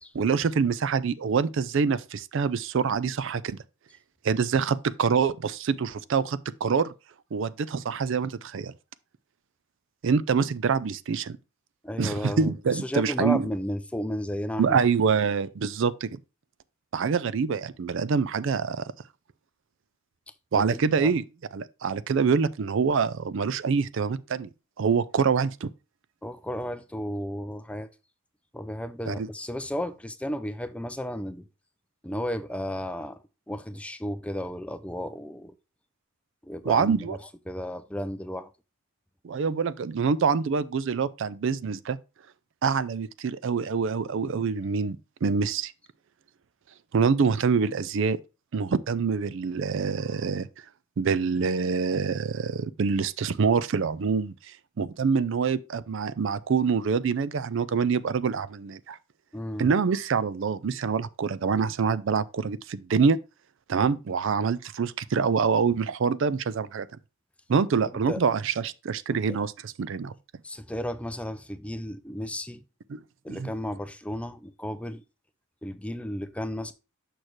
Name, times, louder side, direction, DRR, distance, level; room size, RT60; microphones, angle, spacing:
voice 1, 0.1-3.6 4.2-6.9 7.3-8.7 10.0-11.4 12.0-13.5 14.6-16.2 16.9-18.8 20.5-21.2 21.5-24.5 24.8-25.7 29.1-29.3 36.6-37.2 39.2-42.0 42.6-45.7 46.9-48.2 48.5-50.5 51.0-54.3 54.8-59.0 59.6-63.2 63.7-66.9 67.5-70.1 72.9-73.0 73.3-73.5, right 5 dB, 60° right, 0.4 m, -25 dB
voice 2, 11.8-14.8 20.5-21.1 26.2-27.9 28.5-31.5 32.0-33.2 33.5-35.5 36.4-37.2 37.5-38.5 59.3-59.7 67.8-68.2 69.1-69.2 70.4-72.6 73.2-75.0 75.6-76.7, equal, 5° left, 0.4 m, -33 dB
6.4 x 6.1 x 3.1 m
head